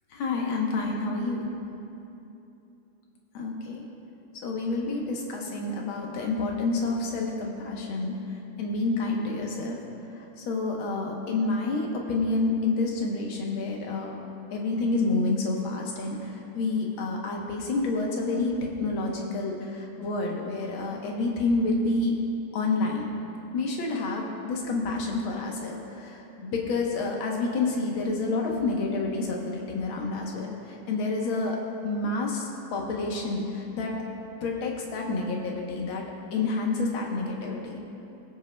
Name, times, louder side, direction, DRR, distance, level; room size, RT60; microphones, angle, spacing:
voice 1, 0.1-1.5 3.3-3.8 4.4-8.2 8.6-9.8 10.4-14.2 14.5-22.1 22.5-23.1 23.5-31.6 31.8-33.9 34.4-36.0 36.3-37.8, left 3 dB, 90° left, 0 dB, 1.9 m, -29 dB
20.5 x 7.3 x 2.2 m, 2.8 s
omnidirectional pair, 2.2 m